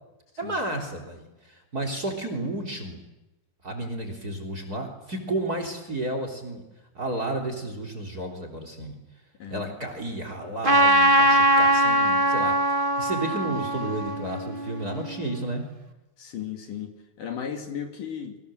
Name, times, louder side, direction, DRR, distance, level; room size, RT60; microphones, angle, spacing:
voice 1, 0.4-3.0 3.6-6.6 6.9-9.0 9.5-15.7, right 2 dB, 25° right, 6 dB, 3.5 m, -32 dB
voice 2, 9.4-9.7 16.2-18.4, left 8 dB, 55° left, 4 dB, 3.6 m, -35 dB
Trumpet, 10.6-15.3, right 1 dB, 75° right, 0.4 m, -22 dB
30.0 x 24.5 x 7.7 m, 1.0 s
omnidirectional pair, 4.7 m